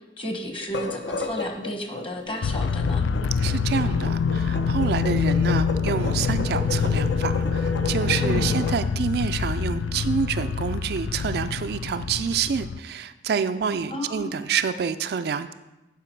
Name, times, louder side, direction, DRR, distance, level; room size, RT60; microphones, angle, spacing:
voice 1, 0.2-3.0 8.2-8.6 13.9-14.3, equal, 30° left, 4 dB, 1.1 m, -33 dB
sound 1, 0.6-8.8, left 3 dB, 70° left, 0.8 m, -33 dB
sound 2, 2.4-12.8, left 5 dB, 90° left, 0.4 m, -25 dB
voice 2, 3.4-15.5, right 6 dB, 55° right, 10 dB, 0.3 m, -27 dB
11.0 x 5.0 x 4.6 m, 1.1 s
head